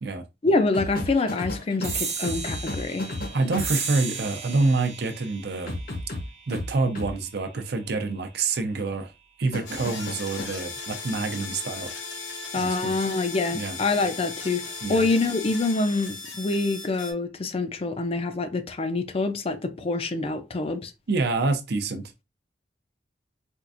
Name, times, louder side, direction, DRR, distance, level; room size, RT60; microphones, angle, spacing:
voice 1, 0.4-3.1 12.5-14.6 14.9-20.9, left 3 dB, 35° left, 0.4 m, -26 dB
sound 1, 0.7-4.0 5.7-7.1 9.5-10.5 12.5-12.8, left 1 dB, 55° left, 0.9 m, -33 dB
sound 2, 1.8-8.7, right 6 dB, 40° right, 0.9 m, -36 dB
voice 2, 3.3-5.7 6.5-9.1 9.4-11.9 12.6-13.0 13.5-13.8 14.8-15.1 21.1-22.1, right 3 dB, 65° right, 0.6 m, -27 dB
sound 3, 9.7-17.1, left 4 dB, 85° left, 1.1 m, -37 dB
4.4 x 2.4 x 2.4 m
head